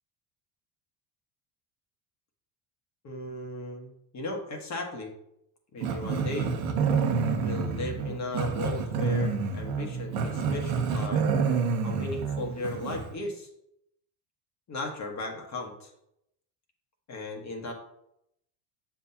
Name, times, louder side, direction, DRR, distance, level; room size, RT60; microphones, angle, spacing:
voice 1, 3.0-5.1 5.7-6.5 7.4-11.2 11.8-13.5 14.7-15.9 17.1-17.7, left 2 dB, 40° left, 1 dB, 1.5 m, -36 dB
Growling, 5.8-13.1, right 5 dB, 85° right, 1.1 m, -28 dB
7.2 x 5.8 x 2.8 m, 0.78 s
supercardioid pair, 105°, 42 cm